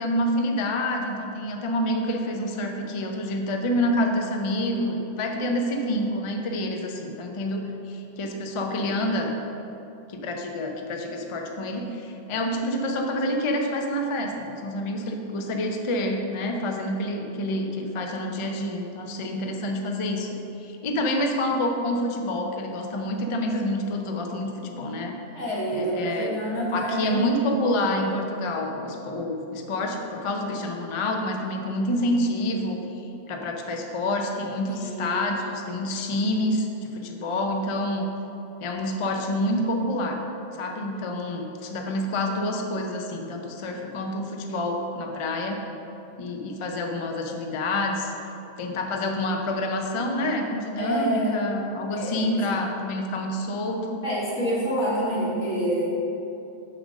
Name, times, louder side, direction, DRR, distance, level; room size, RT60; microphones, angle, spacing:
voice 1, 0.0-9.3 10.1-25.1 25.7-26.3 26.7-38.1 38.6-40.2 40.5-45.6 46.2-48.1 48.6-54.0, left 1 dB, 40° left, 3 dB, 0.4 m, -28 dB
voice 2, 25.4-27.3 34.7-35.2 50.8-51.5 51.9-52.4 54.0-55.9, equal, 80° left, -6 dB, 2.0 m, -27 dB
6.5 x 3.7 x 6.3 m, 2.9 s
omnidirectional pair, 1.2 m